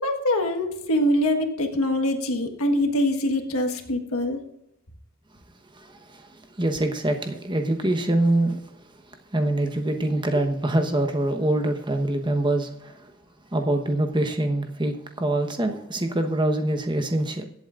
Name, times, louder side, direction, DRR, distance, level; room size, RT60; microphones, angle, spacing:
voice 1, 0.0-4.4, left 1 dB, 85° left, 1.5 m, -24 dB
voice 2, 5.7-8.6 9.3-13.1 13.5-17.4, right 1 dB, 20° right, 1.1 m, -25 dB
23.5 x 8.1 x 2.5 m
head